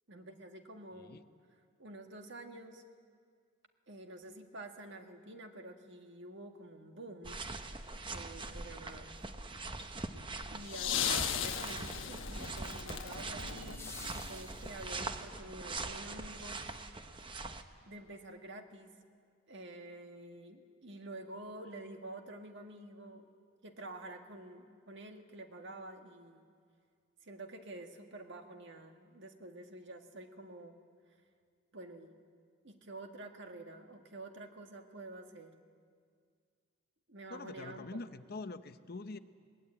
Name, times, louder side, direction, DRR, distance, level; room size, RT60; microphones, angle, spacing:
voice 1, 0.1-1.2 1.8-2.8 3.9-7.4 8.0-9.1 10.5-16.6 17.8-18.9 19.5-23.3 23.6-26.4 27.2-30.8 31.7-32.1 32.6-35.5 37.1-38.0, right 1 dB, 55° right, 1.7 m, -49 dB
voice 2, 0.9-1.2 37.3-39.2, left 3 dB, 45° left, 0.7 m, -44 dB
sound 1, 7.2-17.6, right 3 dB, 20° right, 0.8 m, -42 dB
sound 2, 7.9-8.0 13.5-15.3 17.5-17.6, left 5 dB, 10° left, 0.9 m, -51 dB
sound 3, 10.4-14.6 15.8-15.9, left 9 dB, 65° left, 1.1 m, -38 dB
22.0 x 20.0 x 8.8 m
head